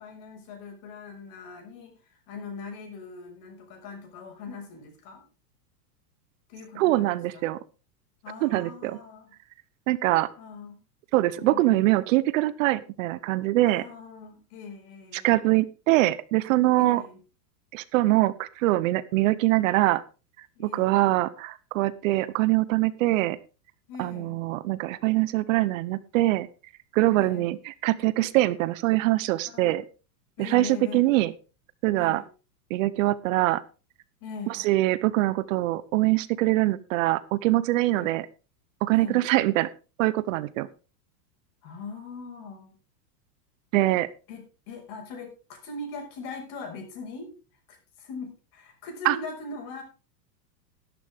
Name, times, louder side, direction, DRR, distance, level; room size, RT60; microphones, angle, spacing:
voice 1, 0.0-5.2 6.5-7.5 8.2-9.3 10.4-10.8 11.4-11.9 13.6-15.4 16.8-17.2 20.6-21.0 23.9-24.4 27.0-27.5 29.5-29.8 30.4-31.1 32.0-32.3 34.2-34.6 37.8-38.1 38.9-39.2 41.6-42.7 43.7-44.0 44.3-47.3 47.7-49.8, left 4 dB, 45° left, 3 dB, 5.9 m, -41 dB
voice 2, 6.8-7.6 8.4-9.0 9.9-10.3 11.1-13.8 15.1-17.0 17.7-20.0 20.6-23.4 24.0-26.5 26.9-29.8 30.4-31.3 31.8-32.2 32.7-33.6 34.5-38.3 38.8-39.7 40.0-40.7 43.7-44.1 49.0-49.2, right 17 dB, 55° right, 16 dB, 0.8 m, -23 dB
12.5 x 12.0 x 3.6 m, 0.33 s
supercardioid pair, 145°, 49 cm